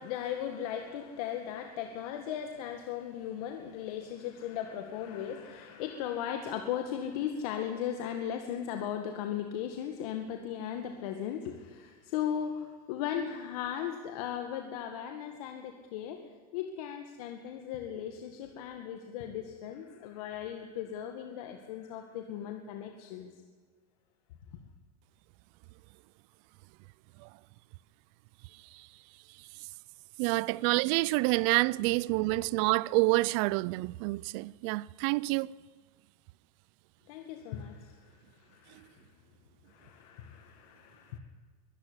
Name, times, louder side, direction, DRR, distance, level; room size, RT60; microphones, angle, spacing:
voice 1, 0.0-16.2 16.5-23.3 37.1-39.0 39.7-41.2, left 9 dB, 65° left, 2.0 m, -37 dB
voice 2, 30.2-35.5, right 22 dB, 50° right, 0.5 m, -28 dB
22.5 x 12.5 x 9.9 m
supercardioid pair, 145°, 20 cm